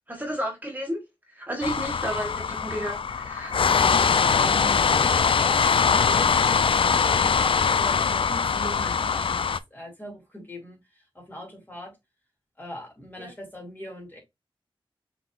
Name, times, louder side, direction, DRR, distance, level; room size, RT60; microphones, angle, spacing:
voice 1, 0.1-1.0 1.3-3.6 13.2-13.3, equal, 20° right, 1.7 m, -32 dB
sound 1, 1.6-9.6, left 6 dB, 70° left, 0.3 m, -22 dB
voice 2, 4.3-10.8 11.1-11.9 12.6-14.2, equal, 20° left, 2.3 m, -40 dB
5.9 x 3.6 x 2.4 m
wide cardioid pair, 75°, 9 cm